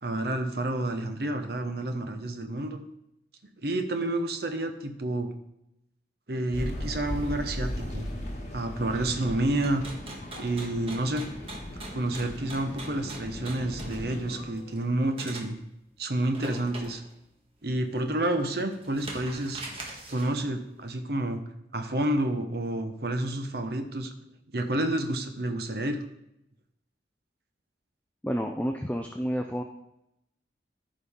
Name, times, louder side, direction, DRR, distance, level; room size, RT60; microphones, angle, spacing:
voice 1, 0.0-2.8 3.6-5.3 6.3-9.8 10.4-11.3 11.9-15.6 16.0-17.0 17.6-19.6 20.1-21.4 21.7-24.1 24.5-26.0, right 1 dB, 60° right, 6 dB, 1.0 m, -29 dB
sound 1, 6.5-14.4, left 1 dB, 40° left, 1.9 m, -37 dB
sound 2, 9.6-15.5 16.2-17.1 17.6-17.7 18.2-20.4, right 2 dB, 30° right, 1.6 m, -42 dB
voice 2, 28.2-29.6, equal, 10° left, 4 dB, 0.4 m, -30 dB
14.0 x 5.3 x 3.7 m, 0.82 s
head